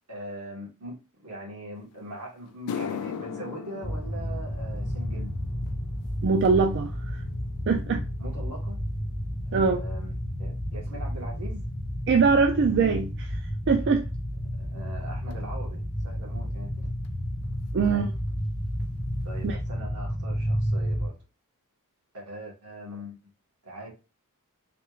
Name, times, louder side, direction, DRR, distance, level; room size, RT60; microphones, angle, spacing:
voice 1, 0.1-1.0 1.2-5.3 8.2-8.8 9.4-11.6 14.6-16.7 17.8-18.1 19.2-21.2 22.1-23.2 23.6-23.9, right 1 dB, 80° right, 1.5 m, -41 dB
sound 1, 1.9-2.0 2.5-11.0 11.3-11.7 12.5-12.6 15.3-15.4 17.0-17.1 17.3-17.6 17.8-18.4 18.8-18.9 19.4-19.5, left 7 dB, 70° left, 0.4 m, -41 dB
sound 2, 3.8-21.1, equal, 10° left, 0.6 m, -31 dB
voice 2, 6.2-7.2 7.7-8.0 9.5-9.8 12.1-13.4 13.7-14.1 17.7-18.1 19.4-19.5, right 5 dB, 55° right, 0.4 m, -22 dB
3.4 x 2.4 x 3.0 m
head